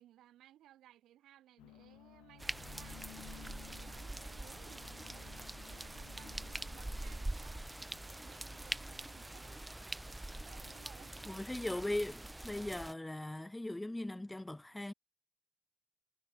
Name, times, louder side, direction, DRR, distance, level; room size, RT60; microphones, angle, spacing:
voice 1, 0.0-7.6 8.0-9.6 10.4-11.9, right 13 dB, 70° right, 5.7 m, -61 dB
sound 1, 1.6-11.8, left 19 dB, 75° left, 1.3 m, -59 dB
sound 2, 2.4-12.9, right 1 dB, 15° right, 1.8 m, -44 dB
voice 2, 11.3-14.9, left 1 dB, 10° left, 0.6 m, -39 dB
hypercardioid pair, 45°, 0 cm